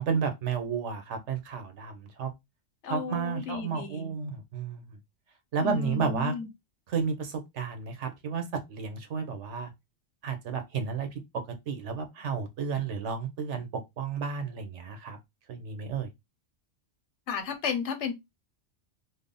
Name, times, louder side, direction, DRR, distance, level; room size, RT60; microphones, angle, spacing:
voice 1, 0.0-2.3 2.9-4.8 5.5-6.3 6.9-8.4 8.7-9.7 10.2-11.1 11.7-13.7 14.0-15.2 15.5-16.1, right 6 dB, 80° right, 1.2 m, -32 dB
voice 2, 2.8-4.1 5.6-6.5 17.3-18.1, left 6 dB, 80° left, 1.1 m, -33 dB
3.4 x 2.1 x 3.7 m
omnidirectional pair, 1.2 m